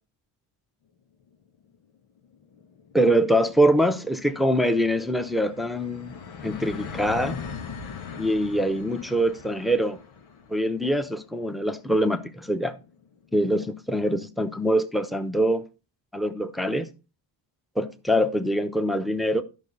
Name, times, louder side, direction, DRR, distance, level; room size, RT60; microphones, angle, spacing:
sound 1, 1.4-1.5 1.8-1.9 2.2-13.6, left 6 dB, 90° left, 1.5 m, -41 dB
voice 1, 2.9-6.1 6.4-7.4 8.2-10.0 10.5-12.7 13.3-15.6 16.1-16.9 17.8-19.4, equal, ahead, 0.9 m, -24 dB
12.5 x 5.6 x 4.1 m
cardioid pair, 90°, 46 cm